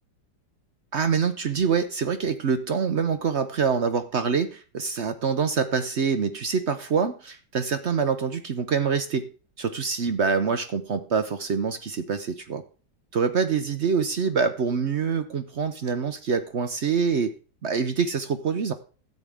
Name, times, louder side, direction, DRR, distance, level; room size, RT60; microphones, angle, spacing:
voice 1, 0.9-9.3 9.6-12.6 13.1-17.3 17.6-18.7, right 5 dB, 55° right, 10 dB, 0.8 m, -25 dB
13.5 x 8.6 x 3.5 m, 0.36 s
omnidirectional pair, 1.9 m